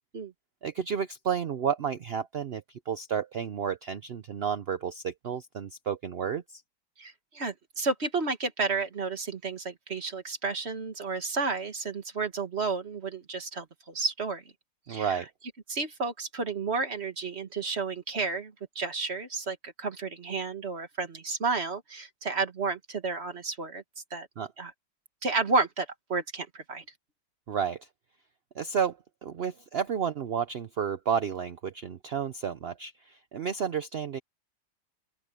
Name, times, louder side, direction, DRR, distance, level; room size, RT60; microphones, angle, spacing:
voice 1, 0.6-6.6 14.9-15.3 24.4-24.5 27.5-27.9 28.6-29.0 29.2-34.2, right 7 dB, 65° right, 0.6 m, -31 dB
voice 2, 7.0-14.4 14.9-15.2 15.7-23.8 24.1-24.3 24.6-24.7 25.2-26.8, right 4 dB, 35° right, 1.8 m, -31 dB
open air
omnidirectional pair, 1.9 m